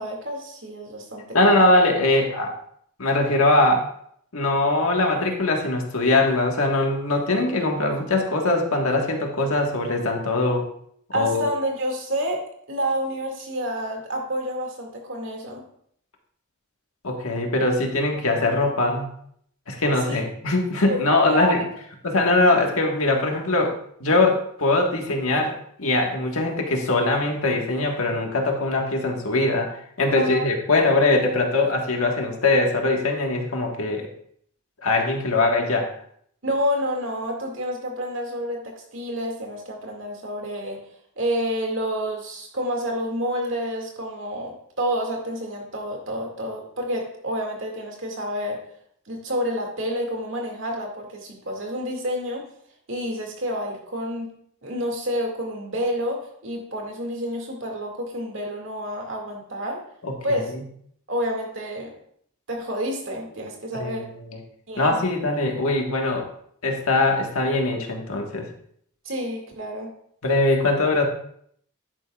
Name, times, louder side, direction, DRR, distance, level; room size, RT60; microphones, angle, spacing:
voice 1, 0.0-1.6 11.1-15.6 20.1-20.2 20.8-21.6 30.1-30.5 36.4-40.8 41.2-48.6 49.1-52.5 52.9-54.3 54.6-59.8 60.2-60.5 61.1-61.9 62.5-64.1 64.7-65.0 69.0-69.9, equal, 60° right, 1 dB, 2.2 m, -29 dB
voice 2, 1.3-2.5 3.0-3.9 4.3-10.7 11.1-11.4 17.0-19.1 19.7-21.6 22.0-34.1 34.8-35.9 60.0-60.4 63.8-63.9 64.8-66.3 66.6-68.5 70.2-71.0, left 2 dB, 80° left, 2 dB, 1.5 m, -21 dB
11.0 x 8.9 x 2.4 m, 0.66 s
head